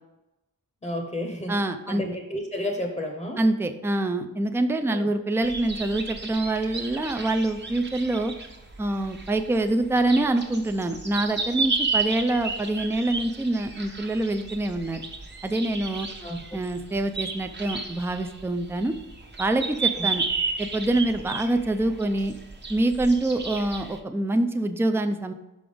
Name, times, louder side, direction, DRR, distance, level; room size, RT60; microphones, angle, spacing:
voice 1, 0.8-3.4 4.9-5.1 16.2-16.6 19.9-20.1, left 1 dB, 15° left, 3 dB, 0.8 m, -32 dB
voice 2, 1.5-2.0 3.4-8.3 8.8-15.0 15.4-16.1 16.5-18.9 19.4-20.2 20.6-22.3 22.7-25.3, right 2 dB, 5° right, 7 dB, 0.4 m, -25 dB
sound 1, 5.4-24.0, right 4 dB, 30° right, 0.9 m, -33 dB
5.9 x 5.4 x 5.0 m, 0.98 s
wide cardioid pair, 150°, 35 cm